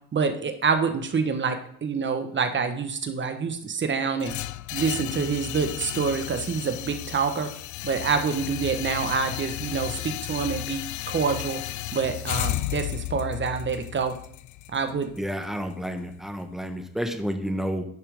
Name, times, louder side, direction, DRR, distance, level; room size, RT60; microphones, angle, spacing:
voice 1, 0.1-1.5 1.8-4.3 4.7-7.5 7.8-11.6 11.9-14.2 14.7-15.1, right 5 dB, 40° right, 7 dB, 1.2 m, -26 dB
sound 1, 4.2-16.2, left 15 dB, 75° left, 0.5 m, -34 dB
voice 2, 15.2-17.9, equal, ahead, 5 dB, 1.2 m, -30 dB
10.5 x 5.6 x 3.6 m, 0.68 s
cardioid pair, 90°, 30 cm